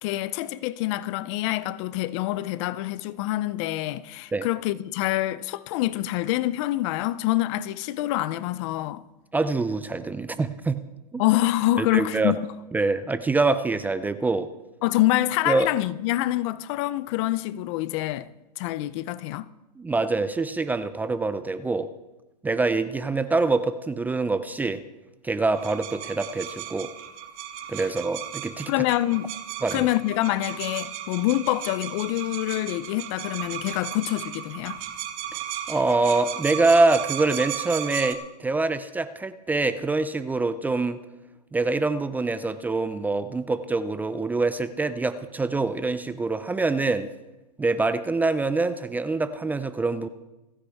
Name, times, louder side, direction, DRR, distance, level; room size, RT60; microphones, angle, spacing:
voice 1, 0.0-9.0 11.2-12.4 14.8-18.3 18.6-19.5 28.7-29.3 29.7-34.8, left 16 dB, 45° left, 0.6 m, -26 dB
voice 2, 9.3-10.8 11.1-11.2 11.8-12.3 12.7-14.5 15.5-15.7 19.8-21.9 22.4-24.8 25.2-26.9 27.7-28.7 29.6-29.9 35.7-41.0 41.5-47.1 47.6-50.1, right 3 dB, 10° right, 0.5 m, -25 dB
sound 1, 25.5-38.1, right 11 dB, 55° right, 1.6 m, -35 dB
28.5 x 9.8 x 3.5 m
hypercardioid pair, 135°, 21 cm